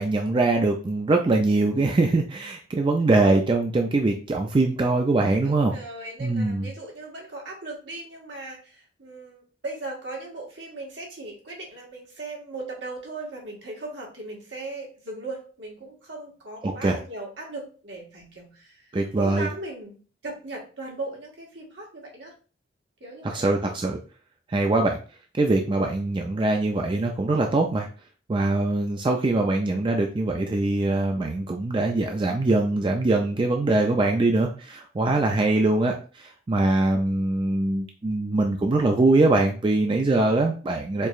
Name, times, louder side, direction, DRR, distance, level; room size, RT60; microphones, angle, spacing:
voice 1, 0.0-5.7 6.2-6.7 16.6-17.0 18.9-19.5 23.2-24.0 24.5-25.0 25.3-27.9 28.3-41.1, right 2 dB, 25° right, 3 dB, 0.4 m, -23 dB
voice 2, 5.4-18.9 19.1-22.3 23.0-23.5, right 2 dB, 75° right, -2 dB, 1.5 m, -38 dB
4.4 x 3.0 x 2.4 m, 0.37 s
head